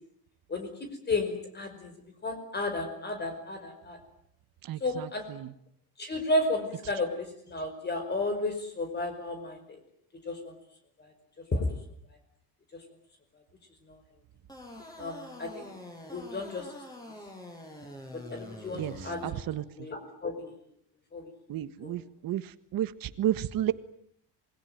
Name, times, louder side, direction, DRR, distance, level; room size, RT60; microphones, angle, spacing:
voice 1, 0.5-1.9 2.2-4.0 4.8-5.2 6.0-9.8 10.3-10.5 11.0-11.1 11.5-11.7 12.7-12.8 13.9-14.0 15.0-15.7 16.1-16.7 18.3-19.4 19.8-20.5 21.1-21.2 21.8-22.0, left 2 dB, 25° left, 6 dB, 5.3 m, -33 dB
voice 2, 4.7-5.1 5.4-5.5 18.7-18.9 19.2-19.6 21.5-22.4 22.7-23.7, right 12 dB, 60° right, 13 dB, 1.6 m, -31 dB
sound 1, 14.5-19.3, left 1 dB, 10° left, 8.0 m, -45 dB
27.5 x 21.5 x 9.3 m, 0.71 s
cardioid pair, 145°, 40 cm